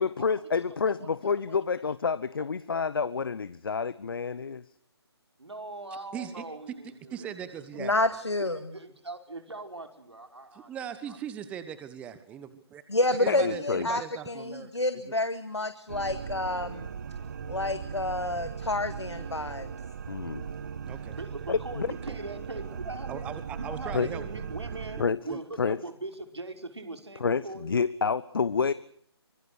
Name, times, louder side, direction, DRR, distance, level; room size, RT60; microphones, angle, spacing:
voice 1, 0.0-4.6 13.3-13.9 20.1-20.5 21.5-21.9 23.9-24.1 25.0-25.2 25.6-25.8 27.2-28.7, left 5 dB, 55° left, 16 dB, 1.0 m, -28 dB
voice 2, 1.0-1.8 2.4-2.5 5.4-7.3 7.7-7.8 8.4-11.2 21.1-23.3 23.5-27.7, right 2 dB, 80° right, 5 dB, 5.1 m, -41 dB
voice 3, 6.1-6.4 7.1-7.9 10.5-12.8 13.1-14.9 20.9-21.2 21.9-22.0 22.7-22.8 23.1-24.2 25.3-25.4, right 9 dB, 10° right, 12 dB, 1.1 m, -39 dB
voice 4, 7.8-8.6 12.9-16.9 17.5-19.7, left 2 dB, 85° left, 10 dB, 2.0 m, -29 dB
sound 1, 15.9-25.1, right 7 dB, 40° right, 1.4 m, -38 dB
25.5 x 22.0 x 6.5 m, 0.62 s
figure-of-eight pair, 150°, 14 cm